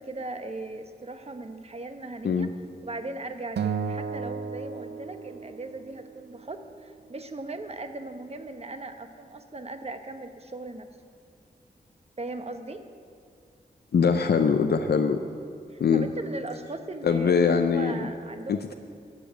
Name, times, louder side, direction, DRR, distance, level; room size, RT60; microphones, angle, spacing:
voice 1, 0.0-2.5 2.8-10.9 12.2-12.8 15.7-18.7, right 2 dB, 35° right, 7 dB, 1.0 m, -38 dB
Acoustic guitar, 3.6-5.9, right 6 dB, 85° right, 0.5 m, -33 dB
voice 2, 13.9-15.2 15.8-16.1 17.0-18.1 18.5-18.7, left 6 dB, 75° left, 6 dB, 0.6 m, -22 dB
12.0 x 6.8 x 9.0 m, 2.3 s
wide cardioid pair, 80°, 17 cm